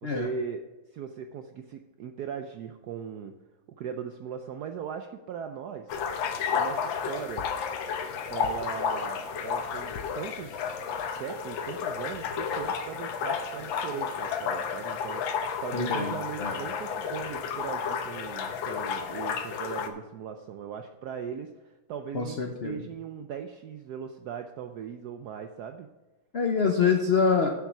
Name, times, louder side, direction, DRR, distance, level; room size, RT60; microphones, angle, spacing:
voice 1, 0.0-0.6 0.9-3.3 3.8-5.9 6.5-7.5 8.3-10.8 11.1-25.9, right 7 dB, 80° right, 7 dB, 0.9 m, -39 dB
sound 1, 5.9-19.9, left 6 dB, 70° left, 1.5 m, -32 dB
voice 2, 15.7-16.5 22.1-22.9 26.3-27.5, left 5 dB, 85° left, 3 dB, 0.5 m, -26 dB
7.3 x 7.2 x 5.9 m, 1.2 s
omnidirectional pair, 2.3 m